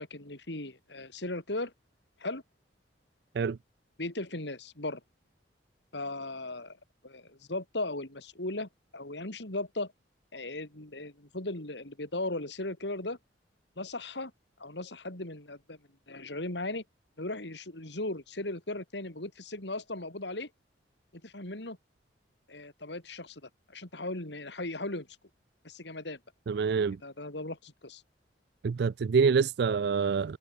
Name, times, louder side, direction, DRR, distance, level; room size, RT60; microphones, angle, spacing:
voice 1, 0.0-1.7 2.2-2.4 4.0-5.0 5.9-6.8 7.0-9.9 10.3-13.2 13.8-14.3 14.6-15.8 16.1-16.8 17.2-20.5 21.1-21.8 22.5-23.4 23.7-25.1 25.6-26.2 27.0-28.0, left 2 dB, 70° left, 3.8 m, -37 dB
voice 2, 26.5-27.0 28.6-30.4, right 5 dB, 65° right, 0.4 m, -26 dB
head